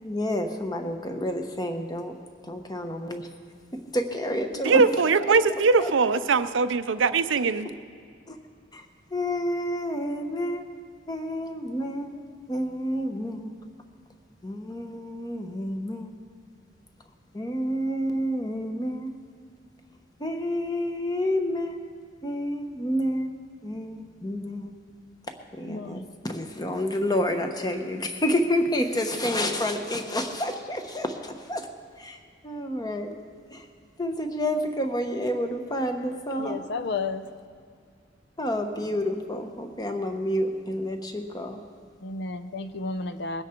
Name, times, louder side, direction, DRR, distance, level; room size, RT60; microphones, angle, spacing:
voice 1, 0.0-2.2 2.4-3.3 3.7-4.8 5.3-5.4 5.8-5.9 8.3-8.4 8.7-10.7 11.1-13.5 14.4-16.1 17.3-19.2 20.2-21.9 22.2-23.3 23.6-24.8 25.3-31.7 32.0-33.2 33.5-33.7 34.0-36.6 38.4-41.6, equal, 20° left, 1.0 m, -29 dB
voice 2, 4.7-7.7, right 4 dB, 85° right, 0.6 m, -21 dB
voice 3, 25.6-26.1 36.4-37.2 42.0-43.4, left 3 dB, 65° left, 0.6 m, -32 dB
21.0 x 9.9 x 4.5 m
head